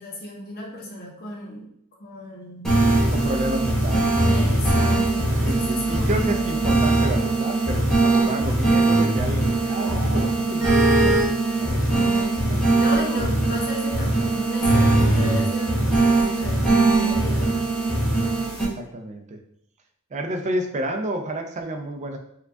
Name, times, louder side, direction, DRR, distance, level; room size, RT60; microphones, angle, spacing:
voice 1, 0.0-1.7 2.0-2.8 4.3-6.6 12.7-17.5, left 1 dB, 45° left, -2 dB, 0.7 m, -35 dB
sound 1, 2.6-18.6, right 2 dB, 5° left, 0.8 m, -21 dB
voice 2, 3.1-4.3 5.4-12.6 18.6-19.4 20.1-22.2, right 1 dB, 30° right, 4 dB, 0.4 m, -30 dB
sound 2, 9.8-10.3, right 2 dB, 50° right, 1.5 m, -35 dB
4.4 x 2.3 x 2.6 m, 0.72 s
head